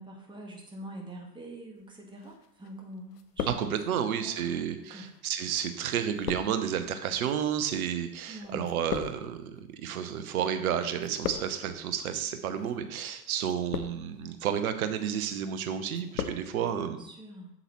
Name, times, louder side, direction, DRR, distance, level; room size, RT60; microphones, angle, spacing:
voice 1, 0.0-5.1 8.3-8.7 16.7-17.5, right 1 dB, 10° right, 1 dB, 1.4 m, -45 dB
sound 1, 2.2-2.8 3.1-4.1 4.9-10.5 10.8-11.8 12.5-12.8 13.4-14.2 14.7-15.1 15.5-16.5 16.7-16.8, left 7 dB, 75° left, 0.8 m, -39 dB
voice 2, 3.5-17.0, right 8 dB, 60° right, 9 dB, 1.0 m, -31 dB
7.8 x 7.3 x 3.1 m, 0.79 s
figure-of-eight pair, 90°, 49 cm